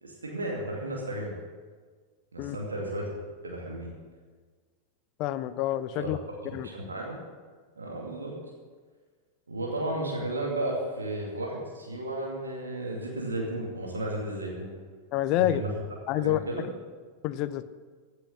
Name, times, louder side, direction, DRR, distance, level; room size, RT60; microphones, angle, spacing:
voice 1, 0.0-1.3 2.3-3.1 3.4-3.9 6.0-6.1 6.5-7.2 7.8-8.3 9.5-14.7 15.3-15.7 16.2-16.7, right 1 dB, 75° right, -2 dB, 2.4 m, -33 dB
voice 2, 5.2-6.2 6.5-6.7 15.1-15.6 16.1-16.4 17.2-17.6, left 14 dB, 40° left, 14 dB, 0.7 m, -27 dB
15.5 x 7.8 x 7.5 m, 1.5 s
figure-of-eight pair, 90°, 0 cm